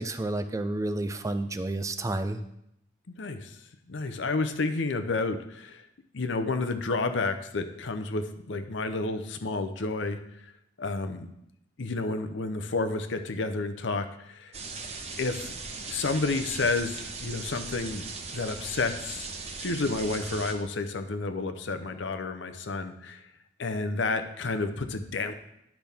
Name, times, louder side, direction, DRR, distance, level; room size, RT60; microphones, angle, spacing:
voice 1, 0.0-2.4, right 2 dB, 15° right, 10 dB, 0.4 m, -30 dB
voice 2, 3.2-3.6 3.9-5.8 6.1-10.5 10.8-11.3 11.8-14.5 15.2-15.5 15.9-18.0 18.3-19.3 19.6-23.2 23.6-25.3, left 3 dB, 70° left, 8 dB, 0.7 m, -30 dB
sound 1, 14.5-20.5, right 4 dB, 35° right, 0.9 m, -39 dB
10.0 x 6.0 x 3.5 m, 0.78 s
head